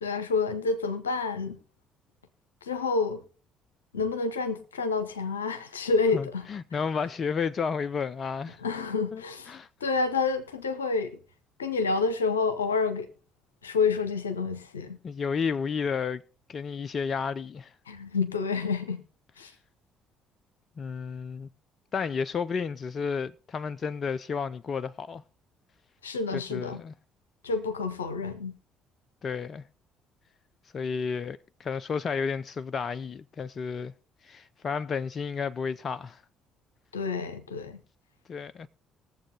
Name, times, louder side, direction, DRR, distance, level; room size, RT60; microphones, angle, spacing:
voice 1, 0.0-1.6 2.6-3.2 3.9-6.5 8.6-9.5 9.8-11.2 11.6-13.1 13.6-15.0 17.9-19.0 19.4-19.5 26.0-26.8 27.4-28.6 36.9-37.8, left 4 dB, 85° left, 0.8 m, -28 dB
voice 2, 6.1-8.6 9.1-9.2 9.5-9.7 15.0-16.2 16.5-17.7 20.8-21.5 21.9-25.2 26.3-26.9 29.2-29.6 30.7-33.9 34.2-36.2 38.3-38.7, left 5 dB, 45° left, 0.4 m, -32 dB
20.5 x 7.4 x 2.8 m
figure-of-eight pair, 50°, 0 cm